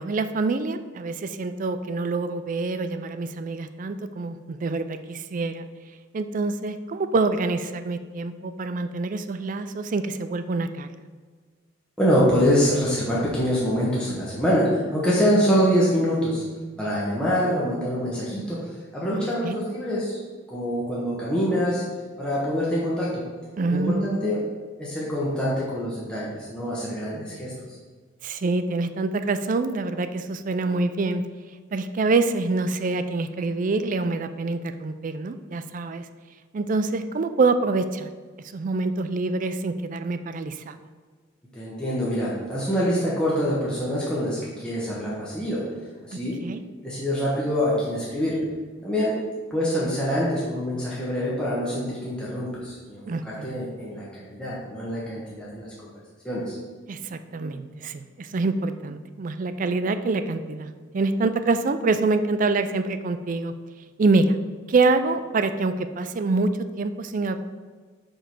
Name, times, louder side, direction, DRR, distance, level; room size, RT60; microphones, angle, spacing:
voice 1, 0.0-5.7 6.1-10.9 19.1-19.6 23.6-24.4 28.2-31.2 31.7-36.0 36.5-38.1 38.5-40.8 46.4-46.6 53.1-53.6 56.9-63.5 64.0-64.4 64.7-66.5 66.8-67.4, right 3 dB, 40° right, 10 dB, 0.4 m, -26 dB
voice 2, 12.0-16.4 16.8-18.6 18.9-20.2 20.5-21.8 22.2-23.2 23.7-24.4 24.8-27.5 41.5-45.6 46.0-46.4 46.8-48.4 48.8-49.1 49.5-55.9 56.2-56.6, equal, 5° left, -8 dB, 1.2 m, -25 dB
5.2 x 5.0 x 5.9 m, 1.5 s
head